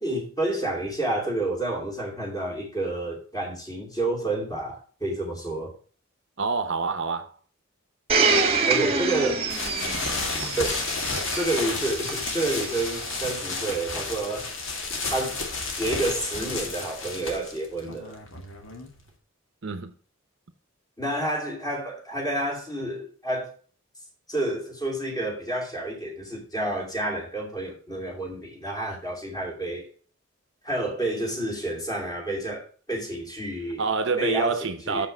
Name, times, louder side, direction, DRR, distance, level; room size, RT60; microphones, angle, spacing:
voice 1, 0.0-5.7 8.7-9.3 10.6-10.7 11.3-14.5 15.1-15.4 15.8-18.2 21.0-23.5 24.3-29.9 30.6-33.9 34.2-34.6 34.8-35.1, right 1 dB, 20° left, 2.8 m, -29 dB
voice 2, 6.4-7.3 19.6-19.9 33.8-35.1, right 4 dB, 60° right, 0.8 m, -27 dB
Domestic sounds home sounds, 8.1-12.9 13.7-13.8, right 4 dB, 30° right, 1.3 m, -26 dB
sound 1, 9.5-19.1, left 3 dB, 65° left, 1.8 m, -32 dB
6.6 x 5.7 x 7.3 m
head